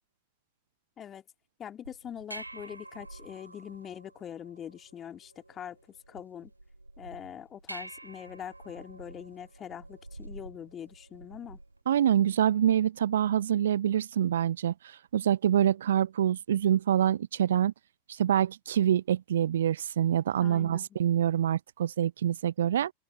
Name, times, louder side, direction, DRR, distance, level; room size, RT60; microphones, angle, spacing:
voice 1, 1.6-6.5 7.0-11.6 20.4-20.8, left 9 dB, 25° left, 2.9 m, -43 dB
sound 1, 1.8-11.8, right 2 dB, 85° right, 2.2 m, -48 dB
voice 2, 11.9-17.7 18.1-22.9, right 10 dB, 65° right, 0.5 m, -26 dB
open air
figure-of-eight pair, 90°, 0 cm